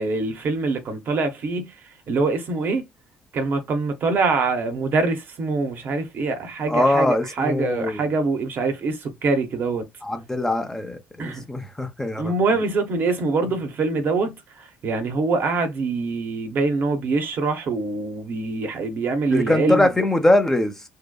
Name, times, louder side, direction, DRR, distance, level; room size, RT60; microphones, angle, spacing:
voice 1, 0.0-1.7 2.1-2.8 3.3-9.9 11.2-11.5 12.2-19.8, right 3 dB, 50° right, 0.7 m, -24 dB
voice 2, 6.7-8.0 10.0-12.3 19.3-20.8, left 1 dB, 10° left, 0.6 m, -22 dB
2.7 x 2.1 x 2.3 m
figure-of-eight pair, 50°, 5 cm